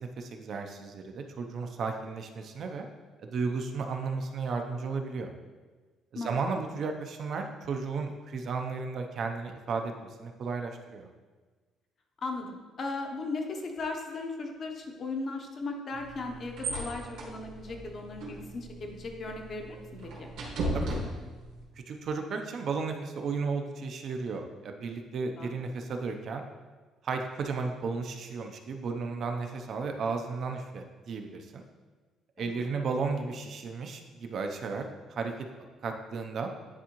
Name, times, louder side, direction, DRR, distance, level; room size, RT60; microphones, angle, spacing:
voice 1, 0.0-2.8 3.2-5.3 6.1-9.9 10.2-11.1 20.7-21.0 21.8-26.4 27.0-31.6 32.4-35.3 35.8-36.5, right 4 dB, 45° right, 4 dB, 0.5 m, -34 dB
voice 2, 12.2-20.3 25.4-25.5 32.4-32.7, left 3 dB, 35° left, 3 dB, 0.7 m, -37 dB
sound 1, 15.9-21.6, right 1 dB, 75° right, 1.5 m, -37 dB
9.7 x 3.6 x 2.9 m, 1.4 s
cardioid pair, 165°, 0 cm